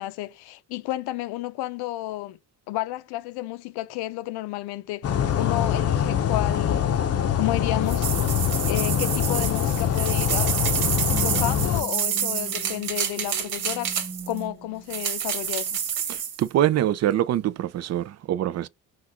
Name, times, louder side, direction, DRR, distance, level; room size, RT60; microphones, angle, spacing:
voice 1, 0.0-2.4 2.7-7.0 7.3-8.1 8.7-10.6 11.2-13.9 14.3-15.8, left 16 dB, 85° left, 0.7 m, -31 dB
sound 1, 5.0-11.8, left 9 dB, 40° left, 0.7 m, -24 dB
sound 2, 7.9-14.4 14.9-16.4, right 8 dB, 70° right, 1.7 m, -28 dB
sound 3, 11.1-15.1 15.6-15.8, right 2 dB, 15° right, 1.5 m, -39 dB
voice 2, 16.1-18.7, right 12 dB, 45° right, 0.4 m, -24 dB
5.8 x 2.4 x 3.0 m
cardioid pair, 120°, 38 cm